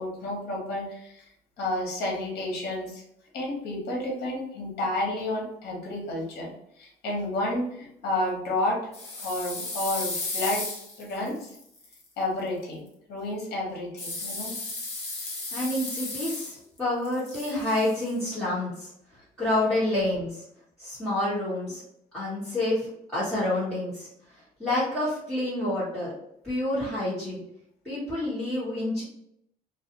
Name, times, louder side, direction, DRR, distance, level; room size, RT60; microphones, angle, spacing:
voice 1, 0.0-3.0 3.3-8.9 9.2-10.6 11.0-11.5 12.2-12.8 13.1-14.6, left 1 dB, 75° left, -2 dB, 1.1 m, -31 dB
sound 1, 8.9-12.0 14.0-16.8 17.0-18.1, left 2 dB, 40° left, 0.8 m, -35 dB
voice 2, 15.5-20.4 20.8-21.8 22.1-26.1 26.4-27.4 27.8-29.0, left 1 dB, 5° left, -13 dB, 1.1 m, -28 dB
2.3 x 2.2 x 2.8 m, 0.74 s
cardioid pair, 110°, 17 cm